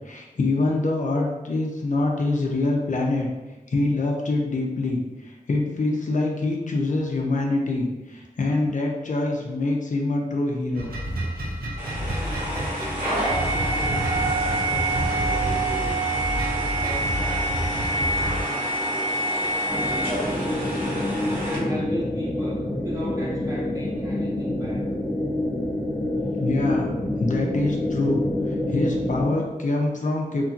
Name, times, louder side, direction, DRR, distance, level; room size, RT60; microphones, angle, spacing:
voice 1, 0.1-3.3 3.7-5.0 5.3-10.9 26.4-26.9 27.2-28.2 28.7-30.5, left 2 dB, 60° left, -1 dB, 0.5 m, -25 dB
sound 1, 10.8-18.4, equal, 80° right, 0.5 m, -30 dB
sound 2, 11.8-21.6, right 2 dB, 40° right, 1.5 m, -26 dB
voice 2, 12.2-16.0 16.5-21.0 21.4-24.9, equal, 20° right, -6 dB, 1.0 m, -38 dB
sound 3, 19.7-29.3, left 1 dB, 10° left, 0.7 m, -27 dB
2.9 x 2.6 x 2.4 m, 1.1 s
cardioid pair, 45°, 15 cm